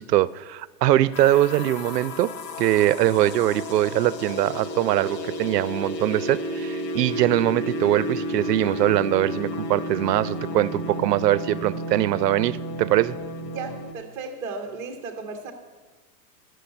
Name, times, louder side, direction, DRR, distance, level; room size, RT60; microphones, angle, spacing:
voice 1, 0.0-2.3 2.6-13.2, right 14 dB, 75° right, 17 dB, 0.5 m, -22 dB
sound 1, 1.1-13.9, left 1 dB, 80° left, 1.1 m, -32 dB
voice 2, 13.5-15.5, right 4 dB, 5° right, 1 dB, 0.6 m, -35 dB
10.0 x 6.4 x 7.8 m, 1.3 s
hypercardioid pair, 160°, 49 cm